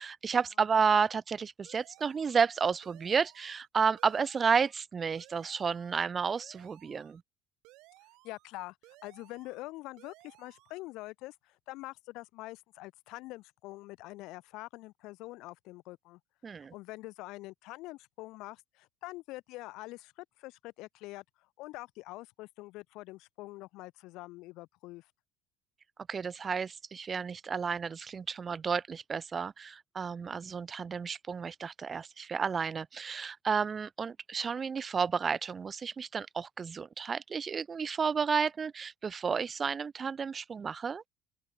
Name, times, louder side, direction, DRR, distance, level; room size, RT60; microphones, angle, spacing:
voice 1, 0.0-7.2 16.4-16.7 26.1-41.0, right 6 dB, 25° right, 0.5 m, -31 dB
sound 1, 1.6-2.5 2.8-3.7 4.0-4.8 5.2-6.0 6.4-7.2 7.6-8.5 8.8-9.7 10.0-10.8, right 21 dB, 70° right, 7.3 m, -59 dB
voice 2, 8.2-8.8 9.0-16.2 16.5-25.1, left 20 dB, 70° left, 1.2 m, -45 dB
open air
cardioid pair, 140°, 0 cm